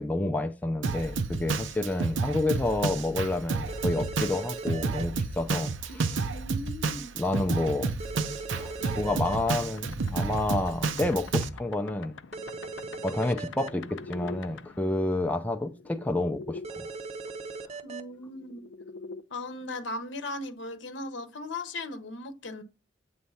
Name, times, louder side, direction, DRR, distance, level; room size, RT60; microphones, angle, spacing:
voice 1, 0.0-5.7 7.1-7.9 8.6-12.2 13.0-16.9, left 2 dB, 10° left, 0.5 m, -29 dB
Drum kit, 0.8-11.5, right 4 dB, 85° right, 0.6 m, -31 dB
sound 1, 3.7-5.0 8.0-9.4 12.3-13.7 16.6-18.0, right 4 dB, 35° right, 0.7 m, -39 dB
voice 2, 5.9-7.1 17.8-18.6 19.3-22.6, left 2 dB, 70° left, 0.8 m, -38 dB
sound 2, 8.8-16.7 18.0-19.2, left 4 dB, 85° left, 0.5 m, -45 dB
7.9 x 3.2 x 5.5 m
head